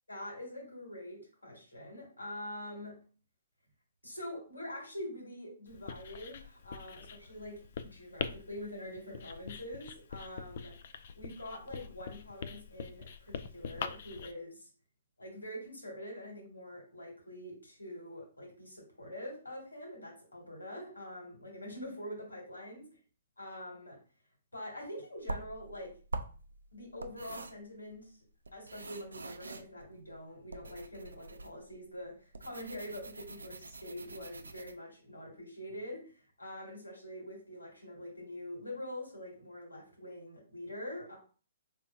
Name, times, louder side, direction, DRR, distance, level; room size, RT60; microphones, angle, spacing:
voice 1, 0.1-3.0 4.0-10.7 11.2-14.7 15.2-22.8 23.4-24.0 24.5-25.9 26.7-28.1 28.5-41.2, left 1 dB, 90° left, 0 dB, 2.2 m, -45 dB
Writing, 5.7-14.3, left 6 dB, 55° left, 0.4 m, -44 dB
sound 1, 25.2-34.7, right 2 dB, 80° right, 0.5 m, -45 dB
4.7 x 3.5 x 2.7 m, 0.38 s
figure-of-eight pair, 125°, 0 cm